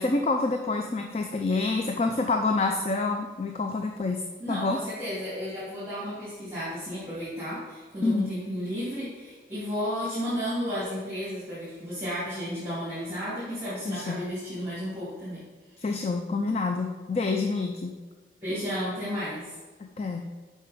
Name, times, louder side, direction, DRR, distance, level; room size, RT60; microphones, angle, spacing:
voice 1, 0.0-4.8 8.0-8.3 13.9-14.2 15.8-18.0 19.8-20.3, left 3 dB, 35° left, 4 dB, 0.4 m, -27 dB
voice 2, 4.4-15.4 18.4-19.5, equal, 15° right, -11 dB, 2.4 m, -33 dB
6.8 x 5.5 x 5.0 m, 1.3 s
head